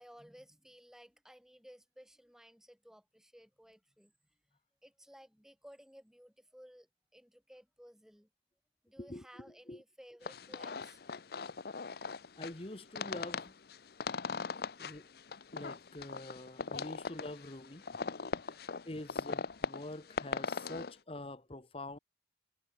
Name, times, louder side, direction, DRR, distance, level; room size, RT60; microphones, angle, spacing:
voice 1, 0.0-4.1 4.5-8.3 8.8-11.4 14.8-14.9, equal, 5° right, 4.4 m, -58 dB
sound 1, 10.2-20.9, left 4 dB, 60° left, 0.7 m, -40 dB
voice 2, 12.4-13.6 14.8-15.1 15.5-17.8 18.5-18.6 18.8-22.0, left 1 dB, 30° left, 1.3 m, -45 dB
head